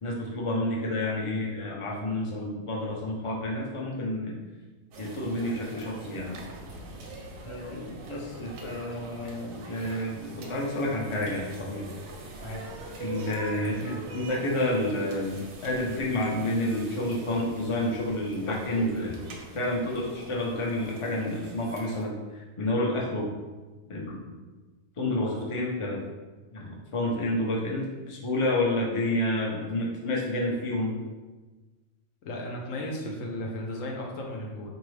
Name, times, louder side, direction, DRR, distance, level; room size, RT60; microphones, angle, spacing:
voice 1, 0.0-4.3 5.0-6.4 7.4-11.9 13.0-19.2 19.5-23.3 23.9-24.2 25.0-26.0 26.5-31.0, left 1 dB, 40° left, -2 dB, 0.4 m, -29 dB
sound 1, 4.9-22.0, right 2 dB, 85° right, 1.1 m, -43 dB
voice 2, 32.2-34.7, left 1 dB, 80° left, 0 dB, 1.0 m, -35 dB
4.0 x 2.7 x 3.1 m, 1.2 s
omnidirectional pair, 1.4 m